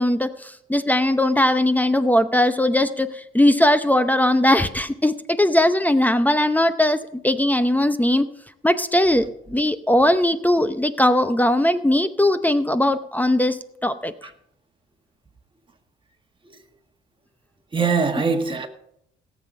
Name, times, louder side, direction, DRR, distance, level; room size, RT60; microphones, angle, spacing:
voice 1, 0.0-7.0 7.2-8.3 8.6-13.6 13.8-14.1, left 1 dB, 10° left, 0.7 m, -19 dB
voice 2, 17.7-18.7, right 5 dB, 25° right, 1.7 m, -22 dB
17.5 x 7.6 x 5.4 m
cardioid pair, 90°, 20 cm